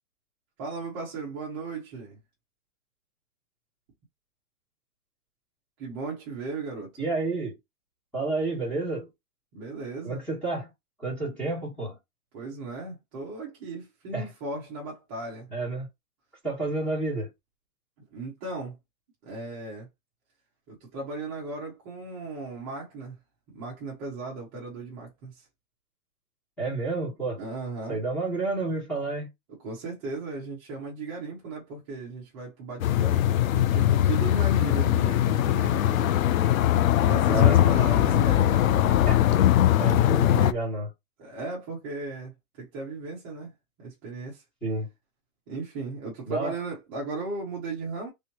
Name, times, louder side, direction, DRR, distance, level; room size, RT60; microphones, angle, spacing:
voice 1, 0.6-2.2 5.8-6.9 9.5-10.2 12.3-15.5 18.1-18.8 19.2-19.9 20.7-23.2 23.5-25.4 27.4-28.0 29.6-33.3 33.5-36.3 36.5-36.6 36.9-38.9 41.2-42.3 42.6-43.5 43.8-44.4 45.5-48.1, right 3 dB, 15° right, 0.6 m, -36 dB
voice 2, 7.0-7.5 8.1-9.1 10.0-10.7 11.0-12.0 14.1-14.3 15.5-15.9 16.4-17.3 26.6-27.4 27.9-29.3 37.3-37.6 39.0-39.2 39.8-40.9 44.6-44.9 46.3-46.5, right 3 dB, ahead, 1.6 m, -30 dB
sound 1, 32.8-40.5, left 12 dB, 60° left, 0.5 m, -21 dB
3.4 x 3.1 x 2.8 m
hypercardioid pair, 165°, 47 cm